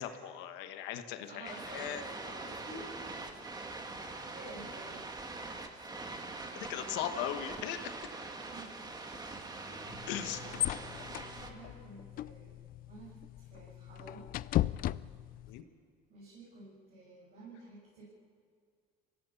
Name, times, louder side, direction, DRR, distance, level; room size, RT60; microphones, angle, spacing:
voice 1, 0.0-2.0 6.5-8.1 10.1-10.4 15.5-15.6, left 10 dB, 80° left, 8 dB, 1.4 m, -38 dB
voice 2, 1.1-2.9 4.3-5.1 6.7-7.0 8.5-8.9 9.6-12.6 12.9-14.3 16.1-18.0, right 2 dB, 60° right, -7 dB, 6.9 m, -51 dB
sound 1, 1.5-11.5, right 3 dB, 20° right, 1.9 m, -43 dB
sound 2, 9.9-15.6, left 14 dB, 55° left, 0.4 m, -37 dB
24.0 x 16.5 x 7.1 m, 2.1 s
cardioid pair, 105°, 18 cm